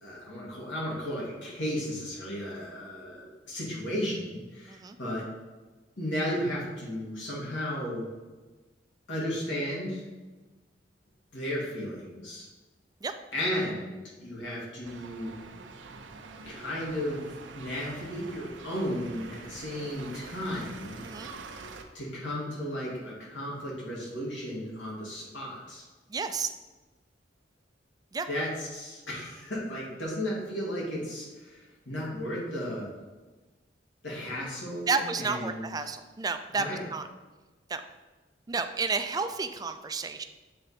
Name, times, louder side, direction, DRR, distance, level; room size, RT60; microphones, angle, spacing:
voice 1, 0.0-5.2 6.0-8.0 9.1-10.0 11.3-12.5 13.3-15.3 16.5-17.2 17.5-21.0 21.9-25.8 28.3-32.9 34.0-35.7 36.5-36.8, equal, 85° left, -5 dB, 2.3 m, -34 dB
sound 1, 14.8-21.8, right 4 dB, 85° right, 0.6 m, -45 dB
voice 2, 26.1-26.5 28.1-28.3 34.9-37.1 37.7-37.8 38.5-40.2, right 4 dB, 20° right, 8 dB, 0.3 m, -31 dB
7.6 x 3.8 x 4.3 m, 1.2 s
head